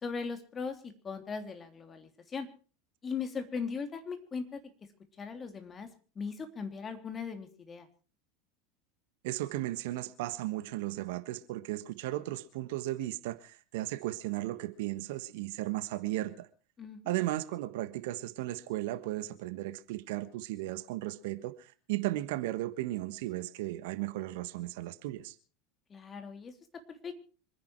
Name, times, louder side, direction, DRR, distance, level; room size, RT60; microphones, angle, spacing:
voice 1, 0.0-2.5 3.0-4.6 5.2-5.9 6.1-7.9 16.8-17.0 25.9-26.5 26.9-27.1, left 5 dB, 30° left, 3.2 m, -38 dB
voice 2, 9.2-16.5 17.1-25.3, right 16 dB, 65° right, 1.3 m, -35 dB
26.0 x 10.5 x 4.6 m
figure-of-eight pair, 80°, 0 cm